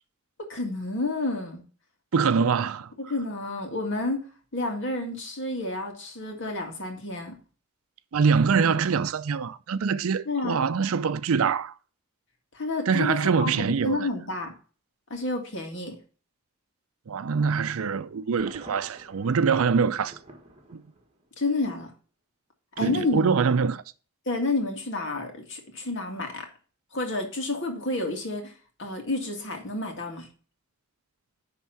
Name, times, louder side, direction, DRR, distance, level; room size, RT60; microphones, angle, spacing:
voice 1, 0.5-1.6 3.0-4.2 4.5-7.4 10.3-10.6 12.5-14.5 15.1-16.0 21.4-21.9 22.8-23.3 24.3-26.5 26.9-28.5 28.8-30.3, left 2 dB, 55° left, 2.0 m, -30 dB
voice 2, 2.1-2.9 8.1-11.7 12.9-14.1 17.1-20.2 20.7-20.8 22.8-23.8, right 5 dB, 70° right, 0.5 m, -24 dB
Thunder, 18.4-21.4, right 2 dB, 30° right, 1.5 m, -48 dB
10.5 x 3.6 x 5.5 m
head